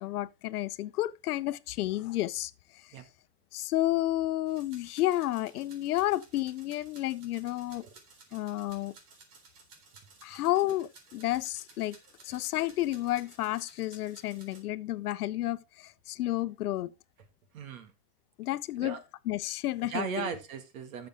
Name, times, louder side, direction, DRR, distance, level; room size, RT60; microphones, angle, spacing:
voice 1, 0.0-2.5 3.5-7.8 8.3-8.9 10.2-12.0 12.2-16.9 18.4-19.0 19.3-20.3, left 15 dB, 75° left, 0.7 m, -31 dB
sound 1, 4.5-14.6, right 4 dB, 90° right, 3.6 m, -57 dB
voice 2, 17.5-17.9 18.8-19.0 19.9-21.1, right 5 dB, 65° right, 2.1 m, -37 dB
11.5 x 6.9 x 3.6 m
supercardioid pair, 155°, 45 cm